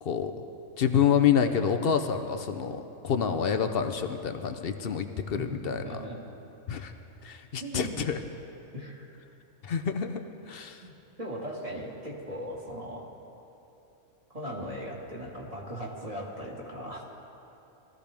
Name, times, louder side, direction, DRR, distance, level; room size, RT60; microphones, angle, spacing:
voice 1, 0.0-0.3 0.8-5.8 6.7-6.9 7.2-8.2 9.6-10.2 10.5-10.8, left 7 dB, 55° left, 7 dB, 0.7 m, -27 dB
voice 2, 5.4-6.2 7.6-8.1 8.7-9.1 10.8-13.1 14.3-17.0, equal, 25° right, -3 dB, 1.9 m, -38 dB
21.0 x 15.0 x 3.5 m, 2.9 s
omnidirectional pair, 1.5 m